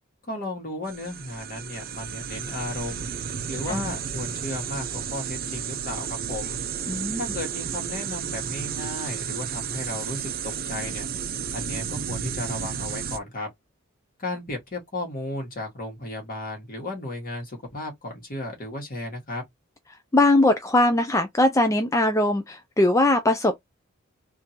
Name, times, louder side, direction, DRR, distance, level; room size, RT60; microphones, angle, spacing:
voice 1, 0.3-3.1 3.5-6.6 7.1-11.0 11.5-13.5 14.2-19.4, left 2 dB, 45° left, 1.7 m, -34 dB
sound 1, 0.9-13.2, right 7 dB, 45° right, 0.5 m, -32 dB
voice 2, 6.9-7.2 20.1-23.6, left 2 dB, 15° left, 0.4 m, -21 dB
3.7 x 2.6 x 2.9 m
head